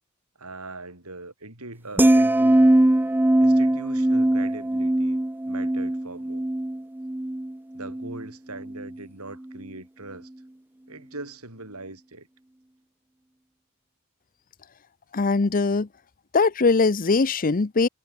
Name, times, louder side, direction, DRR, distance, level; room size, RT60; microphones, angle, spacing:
voice 1, 0.4-2.7 3.4-5.2 5.5-6.5 7.7-10.3 10.9-12.3, right 2 dB, 75° right, 7.5 m, -40 dB
sound 1, 2.0-8.3 8.6-8.9, right 1 dB, 10° right, 0.4 m, -21 dB
voice 2, 15.1-15.9 16.3-17.9, left 4 dB, 40° left, 0.7 m, -21 dB
head